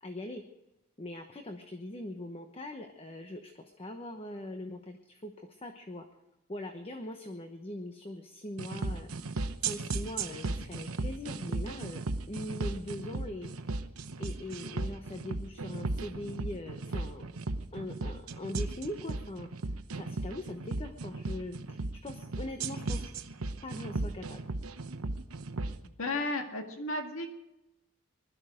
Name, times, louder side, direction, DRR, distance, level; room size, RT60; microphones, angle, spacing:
voice 1, 0.0-0.4 1.0-6.1 6.5-9.1 9.6-12.0 12.3-13.5 14.2-17.3 17.7-19.5 19.9-23.1 23.6-24.4, left 1 dB, 25° left, 6 dB, 1.0 m, -41 dB
sound 1, 8.6-25.8, right 3 dB, 90° right, 1.0 m, -35 dB
voice 2, 25.8-27.3, left 2 dB, 70° left, 4 dB, 1.9 m, -34 dB
20.5 x 12.5 x 5.1 m, 0.93 s
head